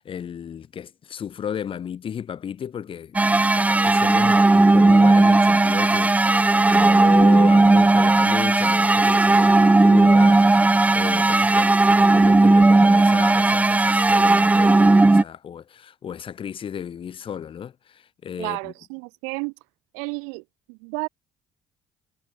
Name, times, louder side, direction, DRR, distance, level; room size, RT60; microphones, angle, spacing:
voice 1, 0.0-18.7, left 8 dB, 50° left, 6.5 m, -34 dB
sound 1, 3.2-15.2, right 2 dB, 10° right, 0.7 m, -16 dB
voice 2, 18.4-19.5 19.9-21.1, right 40 dB or more, 85° right, 4.5 m, -32 dB
supercardioid pair, 75°, 12 cm